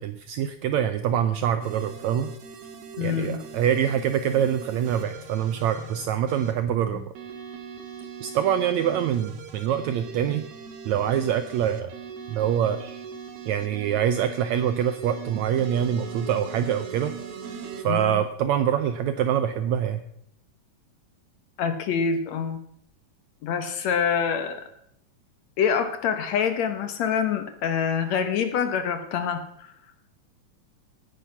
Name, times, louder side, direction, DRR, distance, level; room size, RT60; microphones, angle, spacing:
voice 1, 0.0-2.3 3.0-7.0 8.2-10.4 10.8-11.9 12.3-13.0 13.5-17.1 17.8-20.0, right 9 dB, 80° right, 11 dB, 1.6 m, -25 dB
sound 1, 1.6-6.5 7.2-17.9, right 6 dB, 55° right, 2.2 m, -40 dB
voice 2, 3.0-3.4 17.9-18.2 21.6-22.6 23.4-24.7 25.6-29.7, left 7 dB, 65° left, 9 dB, 2.0 m, -26 dB
17.5 x 10.0 x 5.7 m, 0.73 s
omnidirectional pair, 3.9 m